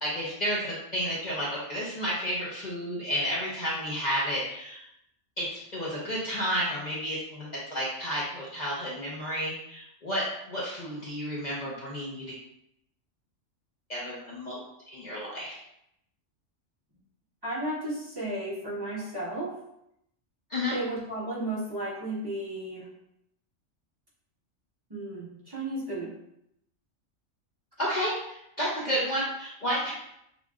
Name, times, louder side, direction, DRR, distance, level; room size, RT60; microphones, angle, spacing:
voice 1, 0.0-4.9 5.4-12.3 13.9-14.6 14.9-15.5 20.5-20.8 27.8-29.9, equal, 40° left, -7 dB, 0.8 m, -31 dB
voice 2, 17.4-19.6 20.7-22.9 24.9-26.1, right 1 dB, 20° right, -9 dB, 1.4 m, -34 dB
6.8 x 2.4 x 2.4 m, 0.79 s
omnidirectional pair, 1.3 m